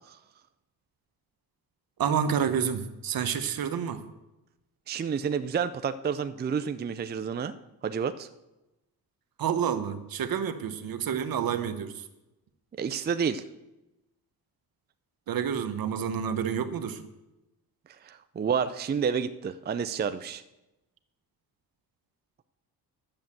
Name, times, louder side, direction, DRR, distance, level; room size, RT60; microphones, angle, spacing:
voice 1, 2.0-4.0 9.4-12.0 15.3-17.0, right 8 dB, 65° right, 9 dB, 1.1 m, -29 dB
voice 2, 4.9-7.5 7.8-8.3 12.8-13.4 18.0-20.4, right 6 dB, 25° right, 10 dB, 0.5 m, -29 dB
10.5 x 7.8 x 7.3 m, 0.98 s
cardioid pair, 110°, 38 cm